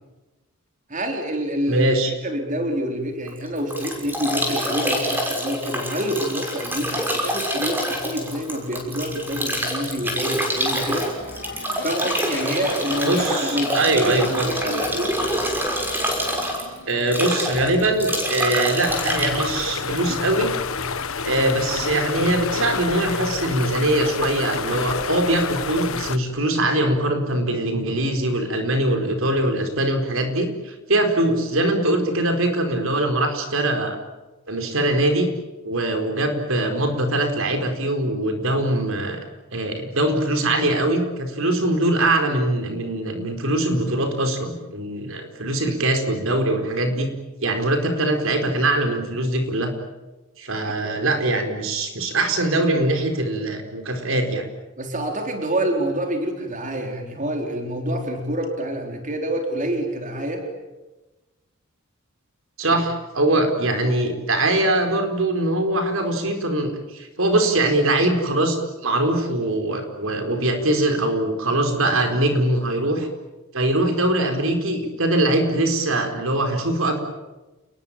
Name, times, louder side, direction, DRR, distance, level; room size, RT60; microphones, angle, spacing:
voice 1, 0.9-1.8 2.2-11.1 11.8-15.2 50.8-51.0 54.8-60.4 62.7-62.8, right 1 dB, 35° right, 3 dB, 4.1 m, -27 dB
voice 2, 1.7-2.1 13.0-14.5 16.9-20.5 21.2-34.0 34.5-35.3 35.6-39.2 39.5-47.1 47.4-49.7 50.4-54.4 62.6-73.1 73.5-77.0, right 1 dB, 70° right, 6 dB, 4.5 m, -22 dB
Bathtub (filling or washing) / Drip / Trickle dribble, 3.3-20.5, equal, 10° right, 6.2 m, -26 dB
sound 1, 6.7-20.3, left 2 dB, 55° left, 5.4 m, -38 dB
sound 2, 18.9-26.2, left 5 dB, 75° left, 1.5 m, -28 dB
29.5 x 21.5 x 8.9 m, 1.1 s
head